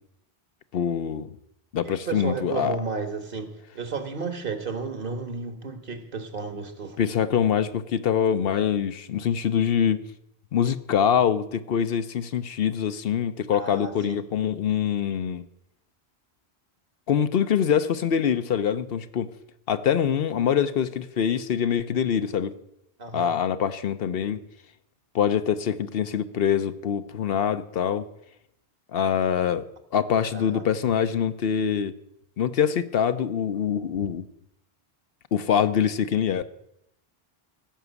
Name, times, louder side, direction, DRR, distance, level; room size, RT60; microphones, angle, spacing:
voice 1, 0.7-1.3 1.7-2.8 7.0-10.0 10.5-15.5 17.1-19.3 19.7-22.6 23.1-24.4 25.1-28.1 28.9-29.6 29.9-31.9 32.4-34.2 35.3-36.4, left 8 dB, 70° left, 12 dB, 0.9 m, -24 dB
voice 2, 1.8-7.0 13.5-14.2 23.0-23.3 30.3-30.7, right 4 dB, 60° right, 8 dB, 1.5 m, -33 dB
15.0 x 6.0 x 8.1 m, 0.80 s
omnidirectional pair, 1.0 m